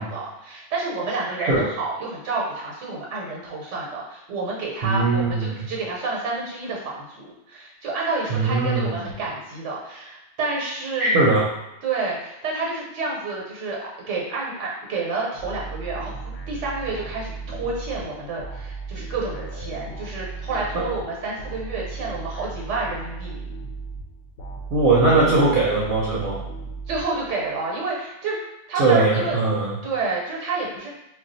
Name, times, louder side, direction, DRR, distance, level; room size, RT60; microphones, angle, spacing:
voice 1, 0.0-11.3 11.8-13.8 14.1-16.2 16.5-23.4 26.9-28.4 28.7-29.3 29.8-30.9, right 3 dB, 85° right, -3 dB, 1.1 m, -29 dB
voice 2, 4.8-5.7 8.3-9.1 11.0-11.5 20.7-20.8 24.7-26.4 28.8-29.8, right 3 dB, 60° right, -4 dB, 0.8 m, -20 dB
sound 1, 15.4-27.6, right 4 dB, 65° left, 0.7 m, -36 dB
2.4 x 2.3 x 3.8 m, 0.92 s
omnidirectional pair, 1.2 m